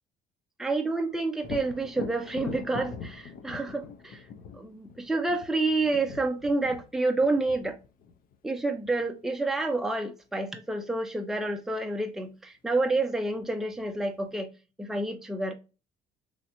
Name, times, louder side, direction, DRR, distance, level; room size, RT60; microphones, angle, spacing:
voice 1, 0.6-4.2 4.5-7.8 8.4-14.5 14.8-15.5, right 2 dB, ahead, 0.5 m, -29 dB
Thunder, 1.4-9.1 12.7-12.8 13.3-14.2, left 6 dB, 55° left, 0.5 m, -42 dB
3.2 x 2.9 x 2.5 m
cardioid pair, 110°, 17 cm